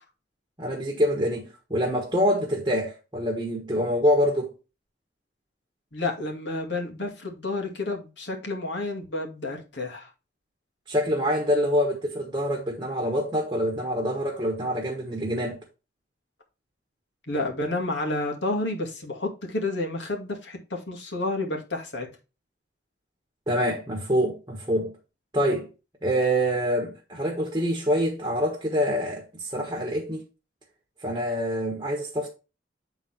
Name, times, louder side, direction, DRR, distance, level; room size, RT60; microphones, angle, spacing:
voice 1, 0.6-4.5 10.9-15.6 23.5-24.9 25.3-25.7 26.0-30.2 31.0-32.3, equal, 20° right, 1.3 m, -25 dB
voice 2, 5.9-10.1 17.3-22.1, left 2 dB, 70° left, 2.1 m, -30 dB
8.6 x 3.9 x 4.3 m
head